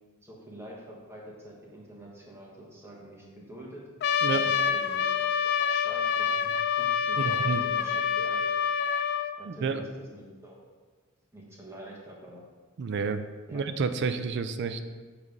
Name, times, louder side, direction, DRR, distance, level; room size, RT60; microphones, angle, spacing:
voice 1, 0.2-3.8 4.3-5.1 5.4-8.6 9.4-10.6 11.3-12.4 13.5-13.6, right 1 dB, 10° right, -3 dB, 1.2 m, -46 dB
Trumpet, 4.0-9.3, left 7 dB, 50° left, 0.3 m, -27 dB
voice 2, 7.2-7.6 9.5-9.8 12.8-13.2 13.5-14.8, right 5 dB, 55° right, 10 dB, 0.4 m, -29 dB
7.3 x 3.2 x 5.2 m, 1.4 s
head